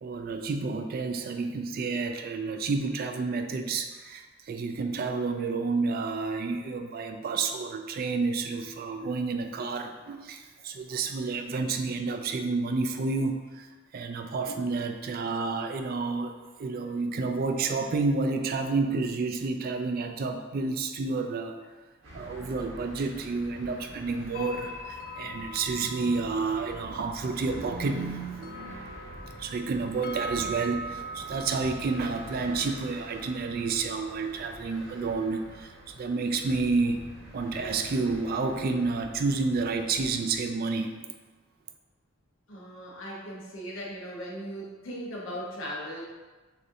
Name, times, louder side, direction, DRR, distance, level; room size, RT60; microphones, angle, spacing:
voice 1, 0.0-13.7 13.9-16.3 16.6-21.6 22.1-28.9 29.4-37.0 37.3-40.9, right 4 dB, 50° right, 6 dB, 0.4 m, -30 dB
sound 1, 22.0-40.4, right 1 dB, 80° right, 1.2 m, -47 dB
sound 2, 24.3-37.5 37.8-37.9 38.8-39.9, equal, 50° left, 0.4 m, -43 dB
voice 2, 42.5-46.0, equal, 75° left, -3 dB, 1.0 m, -38 dB
6.5 x 2.6 x 2.7 m, 1.3 s
head